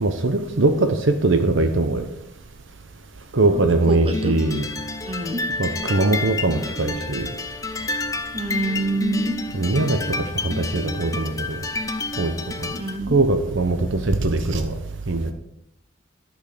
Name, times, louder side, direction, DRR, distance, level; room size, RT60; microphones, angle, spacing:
voice 1, 0.0-2.1 3.3-4.7 5.6-7.3 9.5-10.0 10.4-11.6 12.2-12.3 12.6-12.7 13.1-14.8 15.1-15.3, right 2 dB, 60° right, 7 dB, 0.8 m, -21 dB
voice 2, 3.5-4.3 5.0-5.4 8.3-9.3 12.7-13.2, right 2 dB, 25° right, 6 dB, 1.2 m, -27 dB
sound 1, 4.1-13.0, left 3 dB, 15° left, 0.5 m, -29 dB
11.5 x 6.4 x 6.6 m, 0.83 s
head